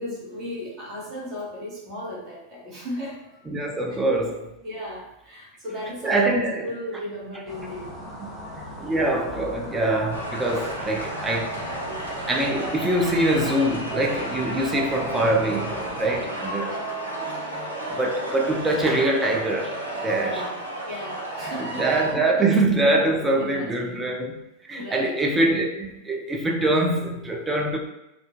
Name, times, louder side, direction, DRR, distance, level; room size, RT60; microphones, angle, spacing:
voice 1, 0.0-3.4 4.6-7.9 14.5-14.8 16.0-16.3 16.7-16.8 20.0-20.5 20.9-21.9 23.1-24.1 24.7-25.2, left 1 dB, 35° right, 1.0 m, -36 dB
voice 2, 3.5-4.5 6.0-6.7 8.6-11.7 12.3-16.7 17.9-19.8 20.0-20.4 21.6-24.3 24.6-27.8, right 2 dB, 10° right, 0.4 m, -24 dB
sound 1, 7.5-16.2, left 1 dB, 5° left, 0.9 m, -38 dB
sound 2, 10.1-22.1, right 1 dB, 85° right, 0.5 m, -32 dB
2.4 x 2.1 x 2.4 m
figure-of-eight pair, 90°, 0 cm